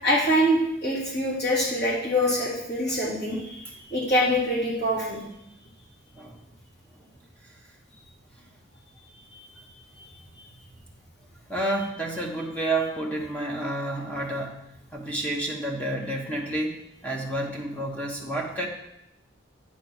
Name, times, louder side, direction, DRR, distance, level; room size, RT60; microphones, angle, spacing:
voice 1, 0.0-3.6 3.9-5.2, equal, 55° left, -7 dB, 3.6 m, -24 dB
voice 2, 11.5-14.6 14.9-16.8 17.0-18.7, right 1 dB, 5° left, 0 dB, 1.2 m, -29 dB
8.7 x 6.5 x 4.5 m, 0.85 s
head